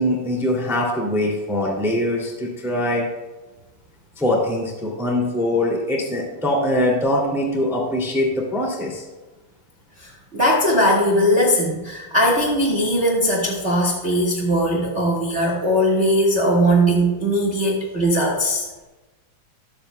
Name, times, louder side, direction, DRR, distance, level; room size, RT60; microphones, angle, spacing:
voice 1, 0.0-3.0 4.2-9.0, left 1 dB, ahead, -2 dB, 1.5 m, -22 dB
voice 2, 10.0-18.6, equal, 50° right, -2 dB, 0.8 m, -19 dB
19.0 x 7.6 x 2.2 m, 1.1 s
omnidirectional pair, 3.9 m